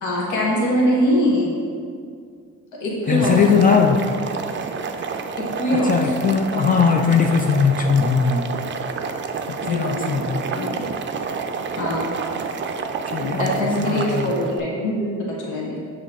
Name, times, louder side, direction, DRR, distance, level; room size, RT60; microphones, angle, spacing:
voice 1, 0.0-1.5 2.8-3.6 5.4-6.2 9.6-10.2 10.5-10.9 11.8-12.1 13.2-15.8, equal, 80° left, -4 dB, 1.3 m, -23 dB
Boiling, 3.0-14.6, right 5 dB, 40° right, 0.4 m, -29 dB
voice 2, 3.1-4.0 5.9-8.5 9.7-10.4 13.1-13.5 13.9-14.3, left 6 dB, 30° left, 3 dB, 0.3 m, -19 dB
6.4 x 3.2 x 4.7 m, 2.2 s
cardioid pair, 90°, 30 cm